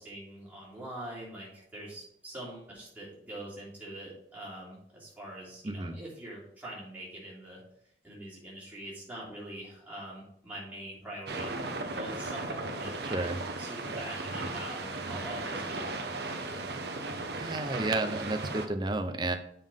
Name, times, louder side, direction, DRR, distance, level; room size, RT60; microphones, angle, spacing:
voice 1, 0.0-7.6 8.0-15.9, right 1 dB, 10° right, -7 dB, 3.1 m, -44 dB
voice 2, 5.6-6.0 13.0-13.4 17.4-19.3, right 2 dB, 25° right, 6 dB, 0.6 m, -32 dB
sound 1, 11.3-18.7, right 2 dB, 65° right, 0.8 m, -36 dB
7.4 x 5.5 x 3.6 m, 0.69 s
head